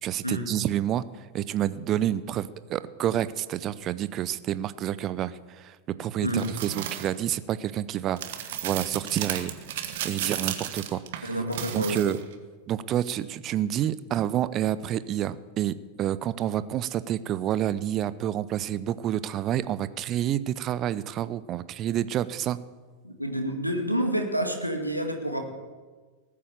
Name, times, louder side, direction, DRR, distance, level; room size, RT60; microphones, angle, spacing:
voice 1, 0.0-9.5 10.0-11.4 11.7-12.2 12.7-22.6, right 11 dB, 35° right, 16 dB, 0.6 m, -29 dB
voice 2, 6.2-6.5 11.2-12.0 23.0-25.4, right 1 dB, 90° right, 3 dB, 2.1 m, -28 dB
sound 1, 6.4-7.1 8.2-12.3 13.0-13.1, right 11 dB, 55° right, 1.4 m, -34 dB
19.0 x 8.6 x 7.1 m, 1.4 s
figure-of-eight pair, 90°, 0 cm